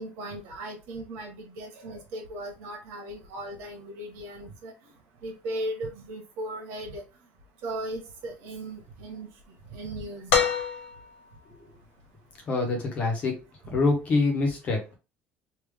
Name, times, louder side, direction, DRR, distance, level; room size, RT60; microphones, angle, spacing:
voice 1, 0.0-4.7 5.2-7.0 7.6-9.3 9.7-10.3, right 1 dB, 75° right, 2 dB, 1.4 m, -37 dB
sound 1, 10.3-11.3 12.8-12.9, left 6 dB, 80° left, 1.2 m, -26 dB
voice 2, 12.5-13.4 13.7-14.8, left 3 dB, 35° left, 1 dB, 1.2 m, -25 dB
3.5 x 2.8 x 3.5 m, 0.30 s
cardioid pair, 180°, 4 cm